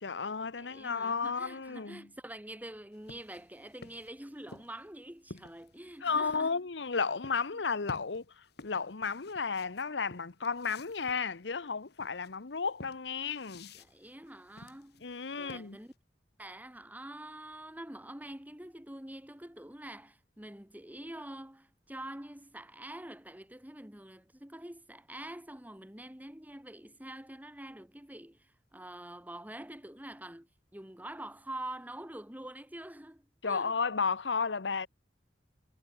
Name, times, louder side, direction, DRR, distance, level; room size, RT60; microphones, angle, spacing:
voice 1, 0.0-2.1 6.0-8.2 8.6-13.7 15.0-15.8 33.4-34.9, left 5 dB, 90° left, 1.0 m, -33 dB
voice 2, 0.6-6.6 7.5-7.6 13.7-15.0 15.4-15.9 16.4-33.8, right 1 dB, 10° right, 2.8 m, -46 dB
sound 1, 2.9-6.5 7.2-7.5 7.9-15.9, left 2 dB, 65° left, 1.6 m, -52 dB
head